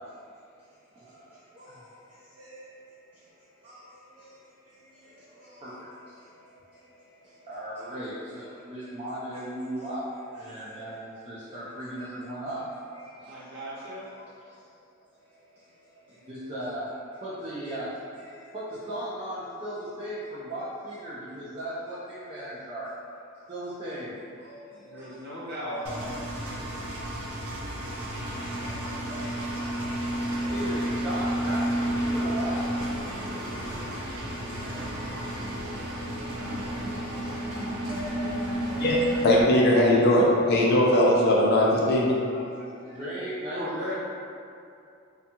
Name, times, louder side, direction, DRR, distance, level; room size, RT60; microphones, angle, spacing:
voice 1, 5.4-5.9 7.5-10.0 10.3-12.6 13.0-13.1 14.1-14.2 16.3-16.8 17.2-17.9 18.2-18.6 18.9-22.9 23.5-24.1 24.5-24.6 25.0-25.1 25.5-26.0 26.4-26.5 28.6-28.8 29.1-29.3 29.7-29.8 30.4-32.7 34.5-35.1 36.8-37.1 37.9-38.3 38.6-39.2 42.9-43.6, right 1 dB, 25° right, -10 dB, 0.3 m, -37 dB
voice 2, 13.2-14.0 24.7-25.8 43.5-43.9, equal, 50° right, -8 dB, 0.8 m, -36 dB
Engine, 25.8-39.4, right 1 dB, 90° right, 0.5 m, -31 dB
voice 3, 38.8-42.7, left 1 dB, 50° left, -3 dB, 0.4 m, -21 dB
2.6 x 2.2 x 2.7 m, 2.5 s
head